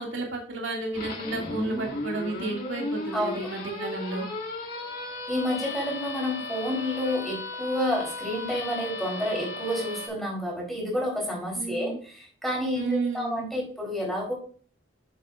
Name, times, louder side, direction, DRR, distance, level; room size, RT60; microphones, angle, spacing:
voice 1, 0.0-4.2 11.5-12.0 12.8-13.4, right 3 dB, 70° right, 0 dB, 2.3 m, -32 dB
sound 1, 0.9-10.1, left 2 dB, 45° left, 2.2 m, -35 dB
voice 2, 5.3-14.3, left 1 dB, ahead, -2 dB, 3.9 m, -29 dB
9.4 x 7.6 x 2.5 m, 0.43 s
head